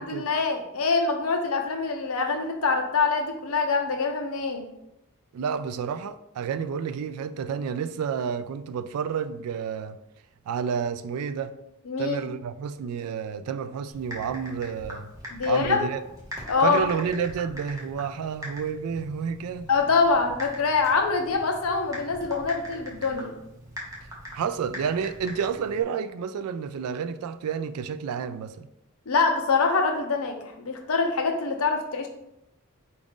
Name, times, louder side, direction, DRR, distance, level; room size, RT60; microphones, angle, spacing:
voice 1, 0.0-4.6 11.9-12.2 15.3-15.8 16.5-16.8 19.7-23.3 29.1-32.1, left 4 dB, 75° left, 0.7 m, -24 dB
voice 2, 5.3-10.0 10.5-11.5 12.0-15.1 15.4-16.0 16.6-19.7 24.3-28.7, right 6 dB, 80° right, 0.3 m, -30 dB
Typing, 13.9-25.8, equal, 15° right, 0.9 m, -42 dB
4.8 x 2.5 x 3.5 m
head